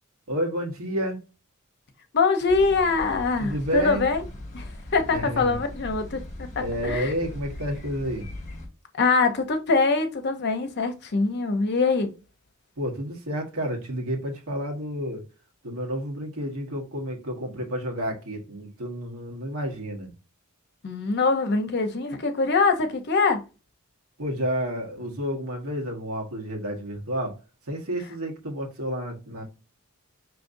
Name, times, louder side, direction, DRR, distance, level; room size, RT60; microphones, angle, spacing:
voice 1, 0.3-1.2 3.4-4.1 5.1-5.6 6.6-8.3 12.8-15.3 15.6-20.1 24.2-27.4 27.6-29.4, equal, 75° right, 1.3 m, -30 dB
voice 2, 2.1-4.2 4.5-7.1 9.0-12.1 20.8-23.4, left 4 dB, 50° left, 0.7 m, -23 dB
sound 1, 2.5-8.7, left 1 dB, 35° left, 1.0 m, -39 dB
5.0 x 3.1 x 2.6 m
head